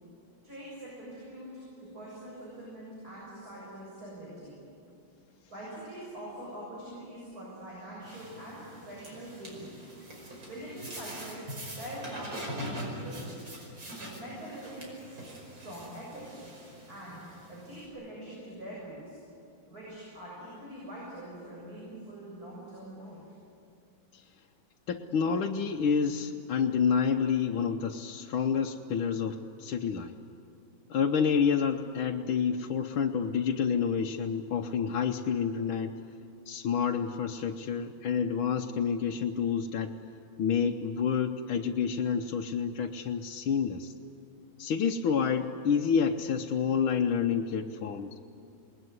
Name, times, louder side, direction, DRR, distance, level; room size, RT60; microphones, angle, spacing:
voice 1, 0.4-4.6 5.5-9.8 10.4-13.3 14.0-15.2 15.5-16.4 16.9-17.2 17.5-19.2 19.7-23.3, right 1 dB, 45° right, -6 dB, 8.0 m, -44 dB
sound 1, 8.0-17.9, equal, 75° right, 6.2 m, -43 dB
voice 2, 24.9-30.1 30.9-36.0 36.5-39.9 40.4-43.9 44.6-48.2, left 6 dB, 85° left, 1 dB, 1.8 m, -29 dB
28.5 x 20.5 x 9.6 m, 2.5 s
omnidirectional pair, 2.2 m